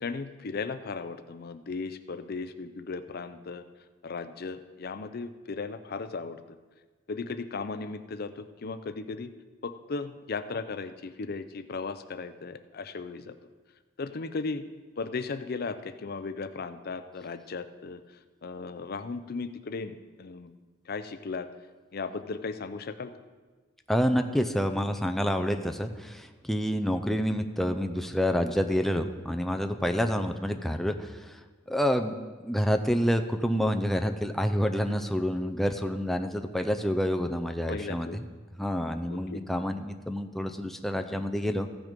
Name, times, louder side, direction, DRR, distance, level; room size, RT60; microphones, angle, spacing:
voice 1, 0.0-3.6 4.0-6.4 7.1-9.3 9.6-13.3 14.0-14.6 15.0-18.0 18.4-20.5 20.9-21.5 21.9-23.1 37.7-38.2 39.1-39.6, left 4 dB, 50° left, 11 dB, 0.5 m, -36 dB
voice 2, 23.9-31.4 31.7-32.2 32.4-38.2 38.6-41.8, equal, ahead, 6 dB, 0.5 m, -28 dB
15.0 x 6.2 x 5.1 m, 1.4 s
head